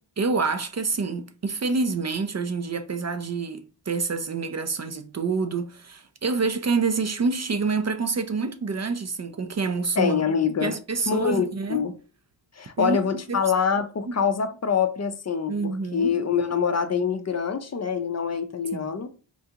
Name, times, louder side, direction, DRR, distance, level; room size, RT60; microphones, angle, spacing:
voice 1, 0.2-10.3 10.6-11.8 12.8-13.4 14.1-14.2 15.5-16.2 18.7-18.9, right 4 dB, 40° right, 0.4 m, -27 dB
voice 2, 10.0-10.7 11.1-11.9 12.5-19.1, left 6 dB, 40° left, 0.4 m, -25 dB
3.7 x 2.3 x 2.8 m
cardioid pair, 60°, 44 cm